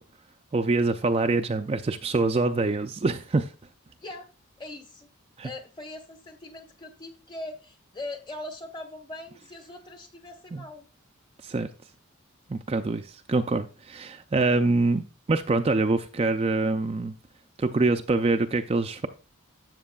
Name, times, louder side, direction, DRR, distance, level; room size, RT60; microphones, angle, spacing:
voice 1, 0.5-3.5 5.4-5.5 10.5-10.6 11.4-11.7 12.5-15.0 15.3-17.1 17.6-19.1, right 3 dB, 30° right, 0.4 m, -25 dB
voice 2, 4.6-5.1 5.4-10.9, left 2 dB, 20° left, 1.1 m, -41 dB
12.5 x 7.4 x 2.3 m
head